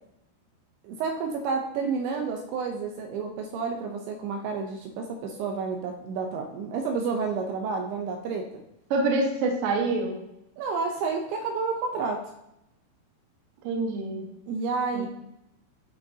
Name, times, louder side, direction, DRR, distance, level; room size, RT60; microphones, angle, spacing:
voice 1, 0.8-8.6 10.6-12.3 14.5-15.1, right 4 dB, 80° right, 3 dB, 3.0 m, -30 dB
voice 2, 8.9-10.2 13.6-14.2 14.9-15.1, right 3 dB, 65° right, 0 dB, 2.5 m, -26 dB
14.0 x 5.0 x 2.8 m, 0.83 s
omnidirectional pair, 5.5 m